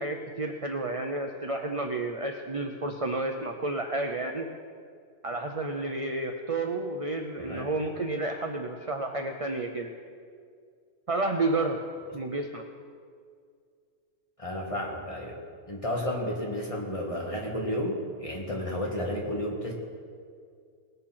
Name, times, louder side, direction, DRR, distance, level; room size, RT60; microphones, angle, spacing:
voice 1, 0.0-4.5 5.2-9.9 11.1-11.8 12.1-12.6, right 2 dB, 40° right, 4 dB, 0.5 m, -31 dB
voice 2, 7.4-7.7 14.4-15.4 15.7-19.7, left 1 dB, 20° left, -2 dB, 1.9 m, -32 dB
19.0 x 6.8 x 5.8 m, 2.1 s
omnidirectional pair, 1.5 m